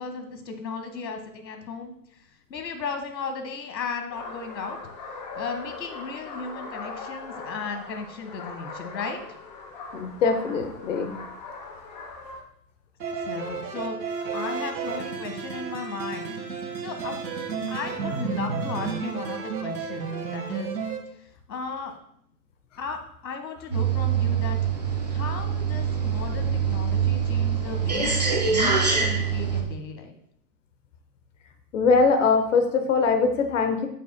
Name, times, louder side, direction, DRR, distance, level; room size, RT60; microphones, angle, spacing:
voice 1, 0.0-1.9 2.5-4.8 5.3-9.2 13.2-14.0 14.3-16.4 16.8-17.2 17.7-20.7 21.5-21.9 22.8-24.6 25.1-28.1 28.5-30.1, left 4 dB, 80° left, 6 dB, 1.6 m, -35 dB
sound 1, 4.1-12.4, left 3 dB, 25° left, 0.8 m, -40 dB
voice 2, 9.9-11.2 31.7-33.9, left 4 dB, 50° left, 7 dB, 1.0 m, -22 dB
sound 2, 13.0-21.0, right 5 dB, 85° right, 1.6 m, -32 dB
sound 3, 23.7-29.6, right 6 dB, 30° right, 0.3 m, -24 dB
8.8 x 7.5 x 2.2 m, 0.70 s
hypercardioid pair, 155°, 50 cm